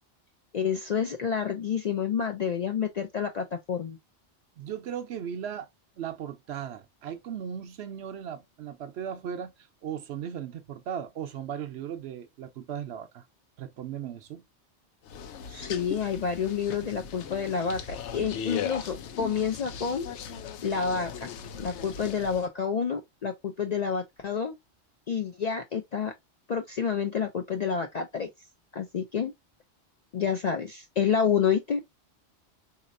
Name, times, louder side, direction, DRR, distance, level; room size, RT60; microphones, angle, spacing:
voice 1, 0.5-4.0 15.5-20.1 20.6-21.3 21.6-24.6 25.1-26.1 26.5-28.3 28.7-29.3 30.1-31.8, left 7 dB, 60° left, 0.4 m, -29 dB
voice 2, 4.6-5.7 6.0-13.2 13.6-14.4, right 8 dB, 70° right, 0.9 m, -37 dB
sound 1, 15.1-22.5, left 8 dB, 85° left, 0.9 m, -38 dB
4.0 x 2.9 x 2.5 m
omnidirectional pair, 1.1 m